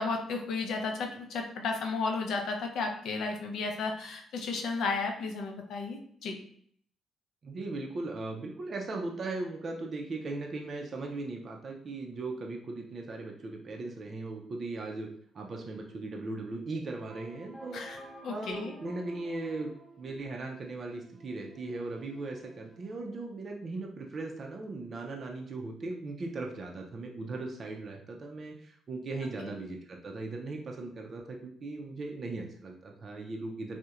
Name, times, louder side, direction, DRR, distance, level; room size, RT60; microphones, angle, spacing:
voice 1, 0.0-6.3 17.7-18.7 29.4-29.5, left 4 dB, 75° left, 2 dB, 0.4 m, -33 dB
voice 2, 7.4-15.1 15.3-17.8 18.3-19.7 20.0-33.8, right 2 dB, 45° right, 1 dB, 0.4 m, -38 dB
sound 1, 17.1-23.0, right 1 dB, 5° left, 0.6 m, -52 dB
2.8 x 2.0 x 2.3 m, 0.64 s
cardioid pair, 90°, 0 cm